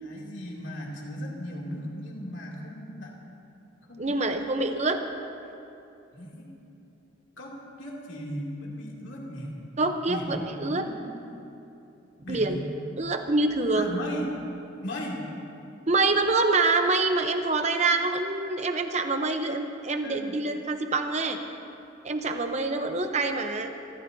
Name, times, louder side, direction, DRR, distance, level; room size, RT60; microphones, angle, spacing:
voice 1, 0.0-3.1 3.9-4.5 6.1-6.5 7.4-9.5 10.1-11.3 12.2-12.6 13.7-14.4 14.8-15.3 20.0-20.4, equal, 70° left, -3 dB, 2.8 m, -37 dB
voice 2, 4.0-5.0 9.8-10.9 12.3-12.6 13.0-13.9 15.9-21.4 22.0-23.7, right 3 dB, 35° right, 6 dB, 0.9 m, -26 dB
26.5 x 14.5 x 2.8 m, 2.8 s
head